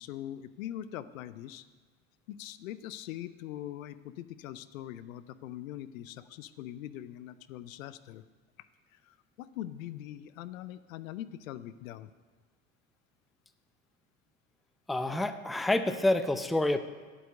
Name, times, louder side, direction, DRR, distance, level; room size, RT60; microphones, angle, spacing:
voice 1, 0.0-1.7 2.3-8.2 8.9-12.1, left 12 dB, 75° left, 15 dB, 0.7 m, -42 dB
voice 2, 14.9-16.8, left 1 dB, ahead, 10 dB, 0.5 m, -28 dB
8.9 x 8.1 x 8.3 m, 1.4 s
hypercardioid pair, 75°, 41 cm